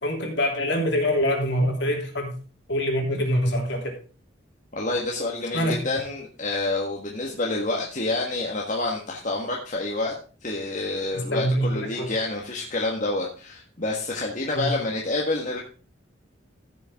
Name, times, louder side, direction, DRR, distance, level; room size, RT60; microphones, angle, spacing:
voice 1, 0.0-2.3 2.7-3.8 5.5-5.8 11.1-12.1 14.5-14.7, equal, 60° left, 1 dB, 3.1 m, -24 dB
voice 2, 4.7-10.1 10.4-15.6, left 2 dB, 40° left, -2 dB, 1.5 m, -28 dB
14.5 x 6.9 x 3.6 m, 0.37 s
head